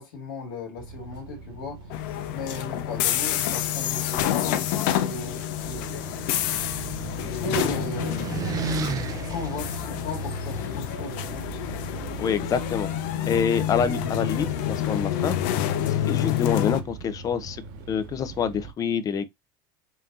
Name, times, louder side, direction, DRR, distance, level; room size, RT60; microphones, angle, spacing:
voice 1, 0.0-6.1 7.2-8.4 9.3-11.5, left 2 dB, 85° left, 1.8 m, -36 dB
sound 1, 0.8-18.7, right 4 dB, 75° right, 1.9 m, -39 dB
sound 2, 1.9-16.8, left 12 dB, 70° left, 0.6 m, -28 dB
sound 3, 5.6-10.7, right 5 dB, 35° right, 0.6 m, -34 dB
voice 2, 12.2-12.9 13.3-15.4 15.8-17.6 17.9-19.3, left 7 dB, 35° left, 0.7 m, -26 dB
5.6 x 2.8 x 2.6 m
supercardioid pair, 115°, 11 cm